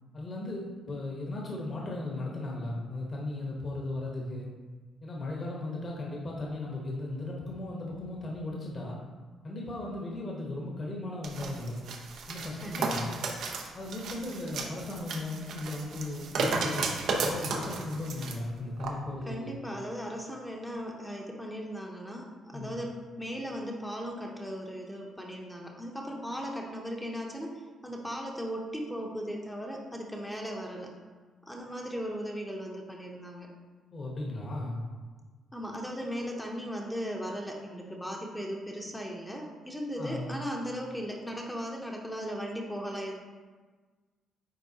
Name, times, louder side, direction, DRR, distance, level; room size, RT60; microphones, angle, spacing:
voice 1, 0.1-4.5 5.0-9.0 9.4-11.8 12.3-13.1 13.7-16.9 17.2-19.6 22.5-22.8 33.9-34.8 40.0-40.4, left 2 dB, 45° left, -2 dB, 1.1 m, -36 dB
sound 1, 11.2-18.4 18.8-18.9, right 3 dB, 75° right, 0.7 m, -34 dB
voice 2, 12.6-13.0 19.3-30.9 31.4-33.5 35.5-43.1, equal, 5° left, 0 dB, 0.8 m, -37 dB
9.2 x 3.6 x 2.9 m, 1.4 s
cardioid pair, 90°, 0 cm